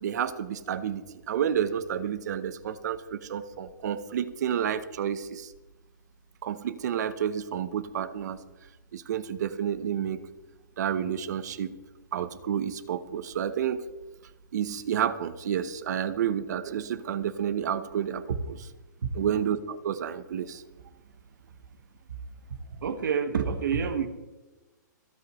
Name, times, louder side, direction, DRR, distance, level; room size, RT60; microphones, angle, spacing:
voice 1, 0.0-5.5 6.4-8.4 8.9-10.2 10.8-11.7 12.1-13.8 14.5-18.6 19.1-20.6, right 9 dB, 60° right, 1.0 m, -30 dB
voice 2, 22.7-24.1, right 6 dB, 80° right, 1.7 m, -28 dB
26.0 x 8.9 x 3.2 m
hypercardioid pair, 160°, 10 cm